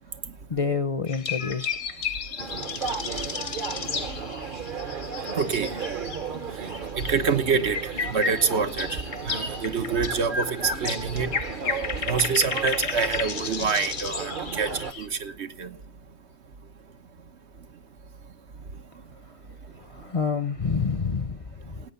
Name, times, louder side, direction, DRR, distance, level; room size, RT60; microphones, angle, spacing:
voice 1, 0.5-1.7 19.3-19.4 19.7-21.8, left 5 dB, 35° left, 0.7 m, -28 dB
sound 1, 1.1-6.4 6.7-15.1, left 5 dB, 80° left, 1.6 m, -33 dB
sound 2, 2.4-14.9, right 5 dB, 50° right, 1.1 m, -34 dB
voice 2, 5.3-5.8 7.0-11.3 12.0-15.7, right 5 dB, 80° right, 1.4 m, -26 dB
17.5 x 8.7 x 6.9 m
omnidirectional pair, 1.1 m